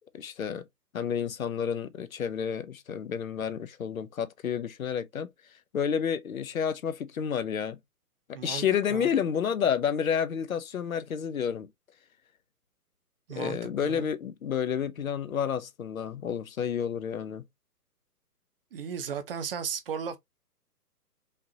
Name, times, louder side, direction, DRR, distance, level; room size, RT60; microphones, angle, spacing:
voice 1, 0.1-0.7 0.9-5.3 5.7-7.8 8.3-11.7 13.4-17.4, left 8 dB, 60° left, 0.8 m, -30 dB
voice 2, 8.3-9.1 13.3-14.1 18.7-20.2, right 7 dB, 35° right, 1.0 m, -36 dB
5.3 x 2.8 x 2.8 m
figure-of-eight pair, 135°, 47 cm